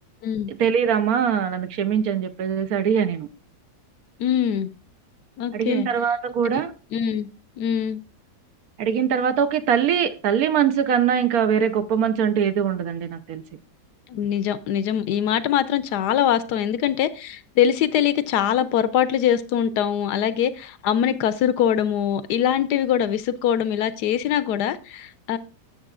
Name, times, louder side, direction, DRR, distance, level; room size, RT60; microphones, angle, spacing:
voice 1, 0.6-3.3 5.5-6.7 8.8-13.4, right 8 dB, 65° right, 10 dB, 1.0 m, -22 dB
voice 2, 4.2-4.7 5.4-5.9 6.4-6.6 6.9-7.3 7.6-8.0 14.1-25.4, left 9 dB, 75° left, 14 dB, 1.1 m, -23 dB
13.0 x 6.8 x 2.4 m, 0.34 s
omnidirectional pair, 1.8 m